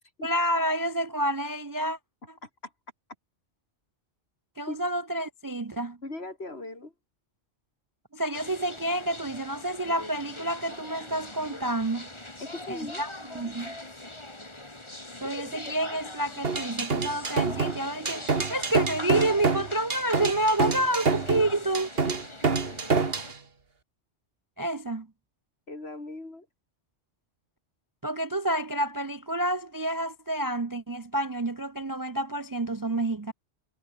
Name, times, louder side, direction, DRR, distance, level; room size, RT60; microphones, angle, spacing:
voice 1, 0.2-2.0 4.6-6.0 8.1-12.1 12.7-13.7 15.2-21.9 24.6-25.1 28.0-33.3, right 1 dB, 25° right, 0.5 m, -29 dB
voice 2, 6.0-6.9 12.4-13.5 25.7-26.5, left 2 dB, 60° left, 4.4 m, -39 dB
sound 1, 8.3-23.3, left 1 dB, 25° left, 2.9 m, -42 dB
sound 2, 16.4-23.3, right 4 dB, 55° right, 2.0 m, -27 dB
omnidirectional pair, 1.2 m